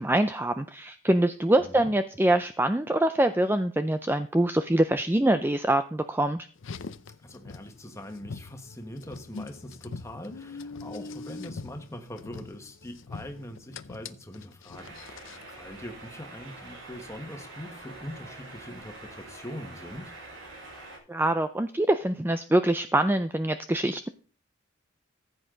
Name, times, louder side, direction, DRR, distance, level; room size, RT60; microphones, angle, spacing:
voice 1, 0.0-6.5 21.1-24.1, right 1 dB, 10° right, 9 dB, 0.4 m, -24 dB
voice 2, 1.6-1.9 7.2-20.1, left 1 dB, 15° left, 5 dB, 1.5 m, -42 dB
Car, 6.6-15.5, left 4 dB, 65° left, 0.6 m, -43 dB
sound 1, 14.7-21.0, right 2 dB, 70° right, 5.6 m, -45 dB
15.0 x 8.5 x 3.9 m, 0.39 s
head